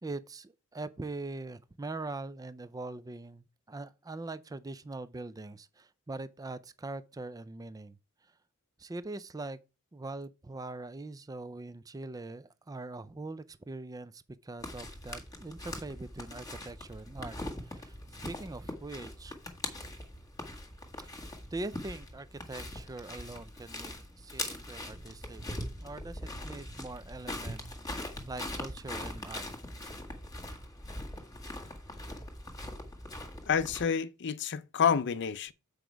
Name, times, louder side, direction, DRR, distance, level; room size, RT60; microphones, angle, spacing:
voice 1, 0.0-8.0 8.8-9.6 9.9-17.4 17.6-18.0 18.2-19.3 21.0-25.4 25.8-27.6 28.0-29.4, right 2 dB, 15° right, 0.4 m, -42 dB
sound 1, 14.6-33.9, left 1 dB, 15° left, 1.7 m, -42 dB
voice 2, 33.5-35.5, left 7 dB, 55° left, 0.5 m, -28 dB
8.0 x 5.0 x 4.6 m
head